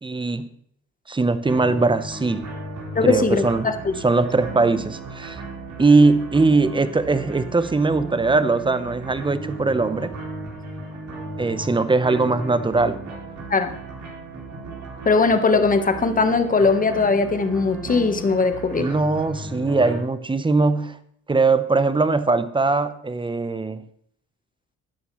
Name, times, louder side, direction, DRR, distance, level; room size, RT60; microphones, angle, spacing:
voice 1, 0.0-0.5 1.1-2.5 3.0-3.7 4.0-5.4 5.8-10.1 11.4-13.0 18.8-21.0 21.3-23.9, right 3 dB, 15° right, 13 dB, 0.8 m, -20 dB
sound 1, 1.4-20.0, right 2 dB, 75° right, 4.2 m, -35 dB
voice 2, 2.9-4.0 13.5-13.7 15.0-18.9, left 4 dB, 25° left, 8 dB, 1.2 m, -20 dB
13.0 x 9.3 x 3.2 m, 0.68 s
cardioid pair, 90°, 30 cm